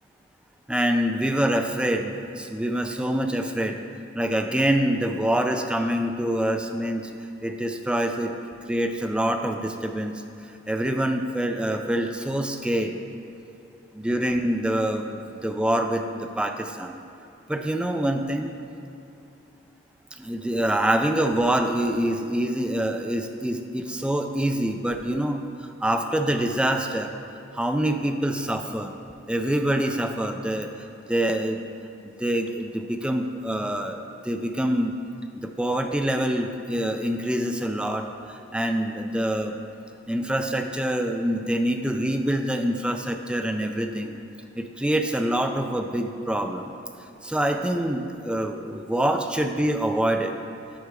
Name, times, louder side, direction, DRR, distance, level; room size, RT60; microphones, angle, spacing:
voice 1, 0.7-3.8 4.1-7.1 7.4-8.3 8.7-10.2 10.7-13.0 13.9-17.0 17.5-18.5 20.2-25.4 25.8-27.1 27.5-28.9 29.3-31.6 32.2-35.0 35.4-39.6 40.1-44.2 44.6-46.7 47.2-50.3, right 1 dB, 5° right, 5 dB, 0.4 m, -25 dB
9.4 x 5.1 x 4.8 m, 2.8 s
head